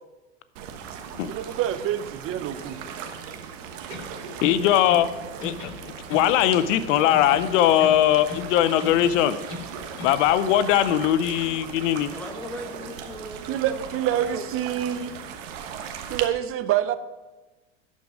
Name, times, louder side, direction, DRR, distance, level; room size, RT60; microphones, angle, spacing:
sound 1, 0.6-16.3, right 7 dB, 75° right, 1.2 m, -38 dB
voice 1, 1.3-2.8 13.5-15.1 16.1-17.0, right 11 dB, 35° right, 13 dB, 0.6 m, -26 dB
sound 2, 3.8-5.1 5.4-6.8 7.1-8.5 8.8-10.2, left 3 dB, 40° left, 2.5 m, -39 dB
voice 2, 4.4-5.1 5.4-5.7 6.1-9.4 10.0-12.1, left 11 dB, 75° left, 14 dB, 0.7 m, -20 dB
voice 3, 12.1-13.8 14.1-14.4, left 1 dB, 5° left, 3 dB, 1.4 m, -38 dB
11.5 x 5.4 x 4.9 m, 1.2 s
supercardioid pair, 110°, 38 cm